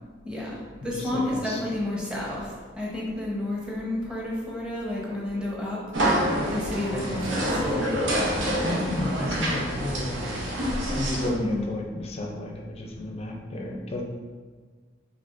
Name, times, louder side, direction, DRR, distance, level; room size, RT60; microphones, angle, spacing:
voice 1, 0.2-5.8 6.5-7.9 11.3-11.7, left 1 dB, 5° right, -5 dB, 0.9 m, -31 dB
voice 2, 0.8-1.6 6.9-7.3 8.6-10.2 11.0-14.0, left 1 dB, 35° left, 1 dB, 0.5 m, -33 dB
sound 1, 5.9-11.3, equal, 90° right, 0.8 m, -27 dB
5.7 x 3.4 x 2.5 m, 1.5 s
head